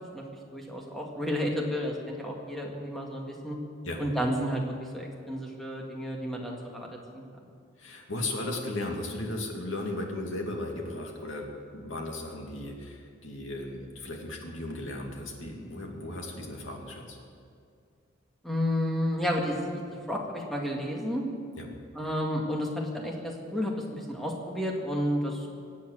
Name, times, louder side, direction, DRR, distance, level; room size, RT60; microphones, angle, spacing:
voice 1, 0.5-3.6 4.0-6.9 7.1-7.3 18.4-19.8 20.1-21.2 21.9-25.5, equal, ahead, -1 dB, 2.0 m, -31 dB
voice 2, 7.8-11.5 11.7-17.2 21.6-21.7, left 2 dB, 80° left, 1 dB, 2.4 m, -36 dB
23.0 x 8.5 x 6.4 m, 2.3 s
head